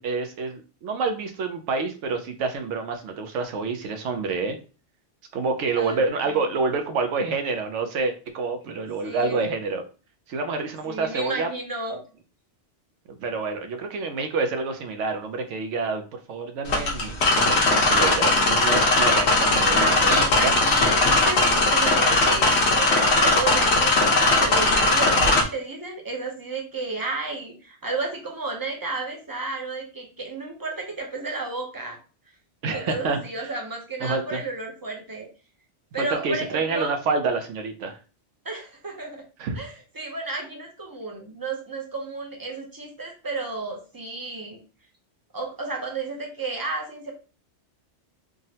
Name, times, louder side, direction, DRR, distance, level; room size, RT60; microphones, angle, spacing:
voice 1, 0.0-4.6 5.3-9.8 10.3-11.5 13.1-20.5 32.6-33.5 34.0-34.4 36.0-38.0 39.4-39.6, right 4 dB, 85° right, 6 dB, 0.9 m, -28 dB
voice 2, 5.8-6.4 9.0-9.5 10.8-12.0 19.5-32.0 32.7-35.3 35.9-37.0 38.4-39.2 39.6-44.6 45.3-47.1, right 3 dB, 30° right, 1 dB, 0.4 m, -32 dB
sound 1, 16.7-25.4, left 2 dB, 70° left, 1.0 m, -19 dB
3.6 x 2.0 x 2.7 m, 0.35 s
omnidirectional pair, 1.2 m